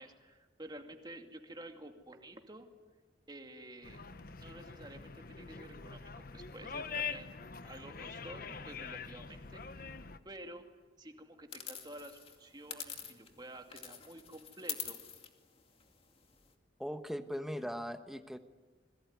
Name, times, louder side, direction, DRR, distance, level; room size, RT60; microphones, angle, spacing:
voice 1, 0.0-2.7 3.3-4.0 4.4-7.3 7.6-9.8 10.2-10.6 11.0-15.0, right 1 dB, 20° right, 4 dB, 2.5 m, -50 dB
sound 1, 3.8-10.2, left 5 dB, 50° left, 1.1 m, -44 dB
sound 2, 11.5-13.4 13.7-16.5, left 8 dB, 30° left, 2.3 m, -45 dB
voice 2, 16.8-18.4, equal, ahead, 8 dB, 1.3 m, -39 dB
27.0 x 22.0 x 9.5 m, 1.4 s
head